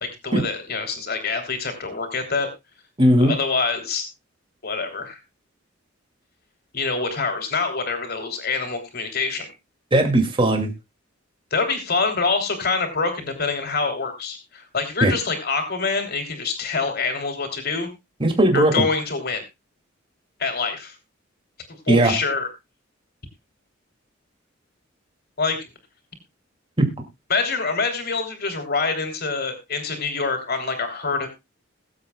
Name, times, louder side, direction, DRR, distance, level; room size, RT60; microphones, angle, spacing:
voice 1, 0.0-2.5 3.2-4.1 4.6-5.2 6.7-9.5 11.5-17.9 18.5-19.4 20.4-20.9 21.9-22.5 25.4-25.7 27.3-31.3, left 4 dB, 55° left, 6 dB, 3.1 m, -25 dB
voice 2, 3.0-3.4 9.9-10.7 15.0-15.1 18.2-18.8 21.9-22.1 26.8-26.9, right 1 dB, 25° right, 4 dB, 2.4 m, -17 dB
22.0 x 8.0 x 2.3 m, 0.22 s
head